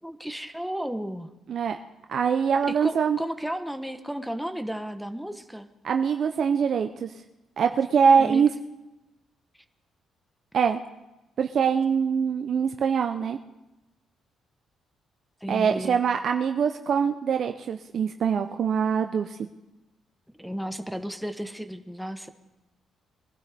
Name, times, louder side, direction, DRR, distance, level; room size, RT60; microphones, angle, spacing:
voice 1, 0.0-1.3 2.7-5.7 8.2-8.5 15.4-16.0 20.3-22.3, equal, ahead, 8 dB, 1.1 m, -33 dB
voice 2, 2.1-3.2 5.8-7.1 7.6-8.5 10.5-10.8 11.4-13.4 15.5-19.4, right 6 dB, 60° right, 6 dB, 0.6 m, -23 dB
22.5 x 12.5 x 3.5 m, 0.99 s
cardioid pair, 90°, 0 cm